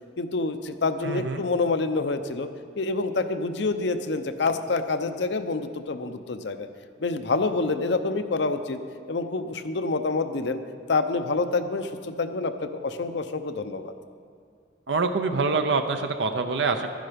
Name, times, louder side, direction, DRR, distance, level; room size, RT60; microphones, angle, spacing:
voice 1, 0.2-2.5 2.8-6.7 7.0-8.8 9.1-10.6 10.9-13.9, left 3 dB, 70° left, 9 dB, 0.7 m, -27 dB
voice 2, 1.0-1.4 14.9-16.9, right 4 dB, 75° right, 7 dB, 0.6 m, -25 dB
12.0 x 10.0 x 5.1 m, 2.2 s
head